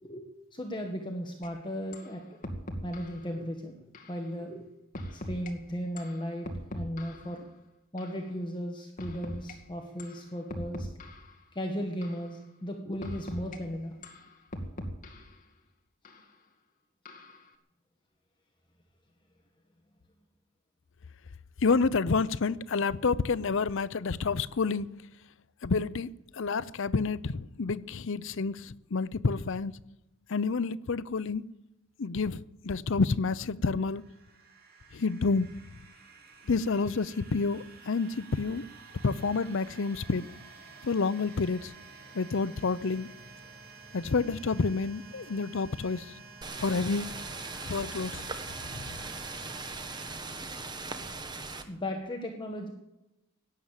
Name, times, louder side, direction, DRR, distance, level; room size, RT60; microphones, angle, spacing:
voice 1, 0.0-2.2 2.8-3.7 4.1-4.7 5.1-7.4 7.9-10.9 11.5-14.0 51.7-52.7, equal, 20° left, 1.6 m, -36 dB
sound 1, 1.4-1.5 1.9-2.1 2.4-3.2 3.9-4.2 4.9-5.5 6.0-7.3 8.0-8.2 9.0-9.5 10.0-10.2 10.5-11.3 12.0-12.3 13.0-13.6 14.0-15.3 16.0-16.2 17.1-17.4, equal, 40° left, 2.1 m, -40 dB
voice 2, 21.6-24.9 25.6-29.8 30.3-31.4 32.0-34.1 34.9-35.5 36.5-38.6 39.0-40.2 40.8-41.7 42.1-43.1 43.9-46.1 46.6-47.1 47.7-48.2 48.7-48.9, left 4 dB, 60° left, 0.6 m, -29 dB
sound 2, 33.6-51.2, right 4 dB, 50° right, 3.7 m, -51 dB
sound 3, 46.4-51.6, right 3 dB, 20° right, 1.3 m, -39 dB
17.5 x 11.0 x 7.5 m
head